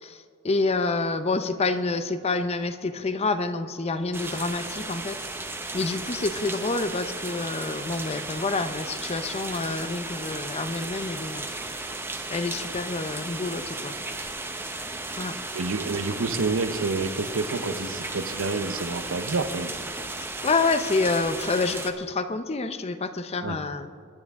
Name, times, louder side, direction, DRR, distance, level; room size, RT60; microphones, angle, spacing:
voice 1, 0.0-5.2 5.5-11.5 12.3-14.0 15.2-15.4 20.2-23.9, left 3 dB, 30° left, 11 dB, 0.6 m, -28 dB
sound 1, 4.1-21.9, right 2 dB, 10° right, 0.8 m, -35 dB
voice 2, 15.5-19.8 23.4-23.6, right 3 dB, 85° right, 10 dB, 0.8 m, -28 dB
23.0 x 9.8 x 3.6 m, 2.1 s
head